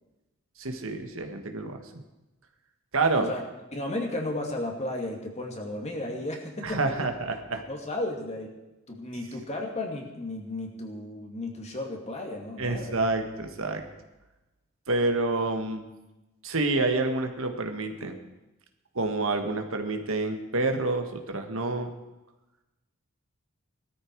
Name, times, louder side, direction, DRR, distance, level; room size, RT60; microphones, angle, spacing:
voice 1, 0.6-1.8 2.9-3.3 6.6-7.6 12.6-13.8 14.9-15.9 16.4-18.2 18.9-21.9, right 2 dB, 65° right, 5 dB, 1.7 m, -28 dB
voice 2, 3.7-6.8 7.7-8.5 8.9-13.0, left 2 dB, 30° left, 2 dB, 2.5 m, -34 dB
19.0 x 13.5 x 4.7 m, 1.0 s
head